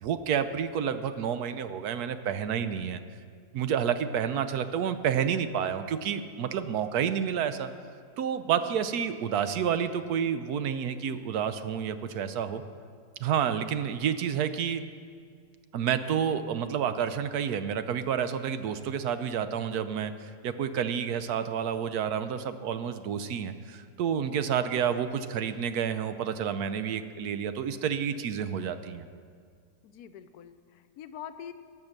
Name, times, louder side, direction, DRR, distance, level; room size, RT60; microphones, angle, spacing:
voice 1, 0.0-3.0 3.5-7.7 8.2-12.6 13.2-14.8 15.7-29.1, right 8 dB, 80° right, 11 dB, 1.2 m, -29 dB
voice 2, 29.8-31.5, left 9 dB, 80° left, 11 dB, 1.1 m, -45 dB
17.5 x 6.1 x 6.6 m, 2.1 s
omnidirectional pair, 1.6 m